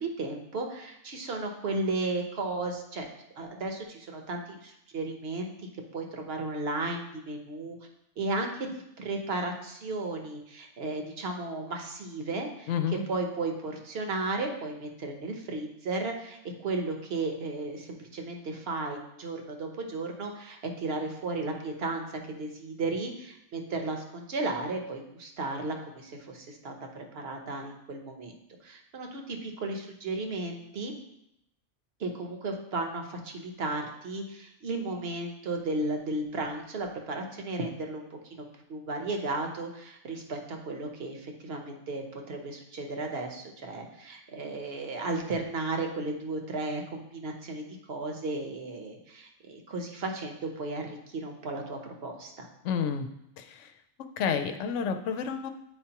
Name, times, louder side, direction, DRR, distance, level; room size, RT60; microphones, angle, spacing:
voice 1, 0.0-3.1 3.4-5.5 5.9-7.8 8.2-12.7 13.1-28.3 28.6-30.9 32.0-52.5, right 2 dB, 55° right, 3 dB, 1.1 m, -34 dB
voice 2, 12.7-13.0 52.6-53.1 53.4-53.7 54.2-55.5, left 7 dB, 75° left, 7 dB, 0.9 m, -30 dB
9.0 x 4.6 x 2.9 m, 0.80 s
omnidirectional pair, 1.3 m